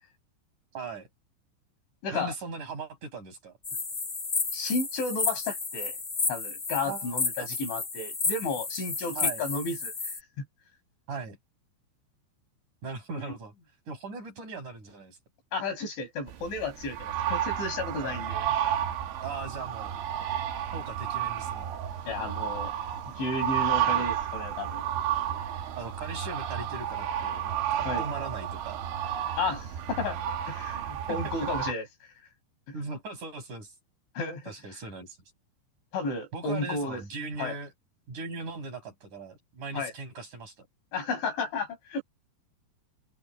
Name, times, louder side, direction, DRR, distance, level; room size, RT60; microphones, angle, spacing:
voice 1, 0.7-1.1 2.1-3.6 6.8-7.5 9.1-9.4 11.1-11.4 12.8-13.5 13.9-15.2 18.0-18.2 19.2-20.0 20.7-21.7 23.8-24.0 25.8-28.8 31.1-31.5 32.7-33.7 34.5-35.2 36.3-37.7 38.1-40.7, right 4 dB, 40° right, 8.6 m, -39 dB
voice 2, 2.0-2.3 4.5-6.0 6.3-10.4 13.3-13.4 15.5-18.5 22.1-22.7 23.1-24.9 27.9-28.0 29.4-30.2 30.5-31.9 34.2-34.5 35.9-37.0 37.4-37.6 39.7-39.9 40.9-42.0, left 3 dB, 75° left, 9.8 m, -33 dB
sound 1, 3.6-10.2, left 4 dB, 40° left, 1.0 m, -32 dB
sound 2, 16.3-31.7, right 10 dB, 75° right, 4.2 m, -31 dB
omnidirectional pair, 5.4 m